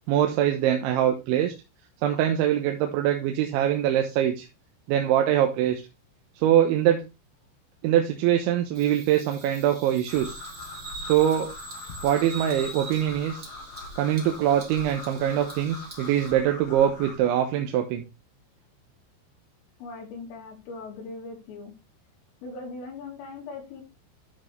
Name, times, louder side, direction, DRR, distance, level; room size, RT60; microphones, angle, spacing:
voice 1, 0.1-1.5 2.0-4.5 4.9-5.8 6.4-7.0 7.8-10.4 11.0-11.5 12.0-13.5 14.0-18.0, right 11 dB, 75° right, 4 dB, 3.1 m, -23 dB
Bird vocalization bird call bird song, 8.7-16.3, right 3 dB, 40° right, 1.2 m, -43 dB
sound 1, 10.1-17.2, left 3 dB, 50° left, 2.2 m, -42 dB
voice 2, 19.8-21.7 22.4-23.8, left 3 dB, 85° left, -1 dB, 5.7 m, -39 dB
12.0 x 6.2 x 3.3 m, 0.26 s
omnidirectional pair, 5.7 m